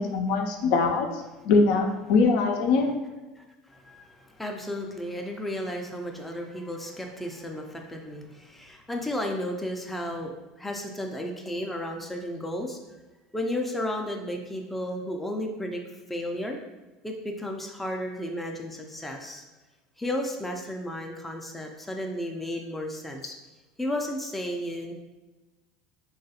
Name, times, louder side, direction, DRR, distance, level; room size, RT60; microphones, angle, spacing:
voice 1, 0.0-2.9, left 4 dB, 65° left, 3 dB, 0.4 m, -23 dB
voice 2, 3.4-12.8 13.3-15.8 16.1-16.6 17.0-19.4 20.0-23.3 23.8-24.9, left 1 dB, 5° left, 2 dB, 0.4 m, -33 dB
3.0 x 2.3 x 2.8 m, 1.1 s
hypercardioid pair, 90°, 2 cm